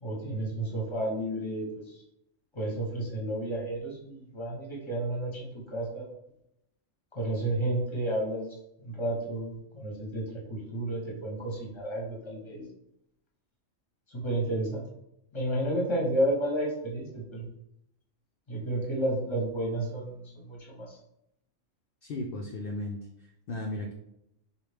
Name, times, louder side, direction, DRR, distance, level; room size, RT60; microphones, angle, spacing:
voice 1, 0.0-2.0 2.5-6.1 7.1-8.5 8.8-12.7 14.1-14.8 15.3-17.5 18.5-21.0, right 1 dB, 25° left, -2 dB, 0.8 m, -31 dB
voice 2, 22.0-23.9, left 1 dB, 60° left, 0 dB, 0.6 m, -36 dB
4.2 x 2.4 x 3.3 m, 0.80 s
omnidirectional pair, 1.4 m